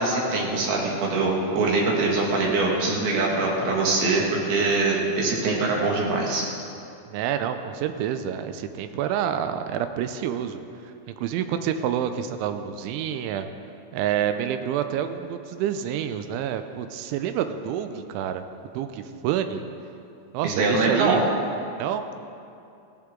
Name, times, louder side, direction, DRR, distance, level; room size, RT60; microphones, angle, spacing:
voice 1, 0.0-6.4 20.4-21.2, right 3 dB, 60° right, -2 dB, 3.4 m, -23 dB
voice 2, 7.1-10.6 11.2-13.5 13.9-18.4 18.7-19.6 20.3-21.2 21.8-22.2, right 9 dB, 85° right, 8 dB, 2.9 m, -28 dB
16.5 x 14.0 x 3.8 m, 2.6 s
omnidirectional pair, 5.8 m